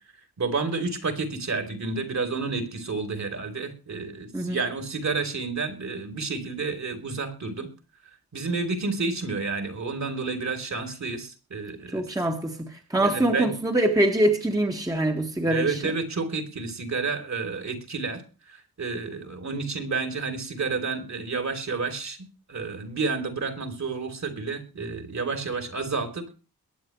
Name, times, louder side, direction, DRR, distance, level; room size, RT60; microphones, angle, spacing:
voice 1, 0.4-7.7 8.3-12.0 13.0-13.5 15.4-18.2 18.8-22.2 22.5-26.3, right 4 dB, 45° right, 3.3 m, -30 dB
voice 2, 11.9-15.8, right 1 dB, 10° right, 1.7 m, -24 dB
22.0 x 9.3 x 3.1 m
wide cardioid pair, 150°, 38 cm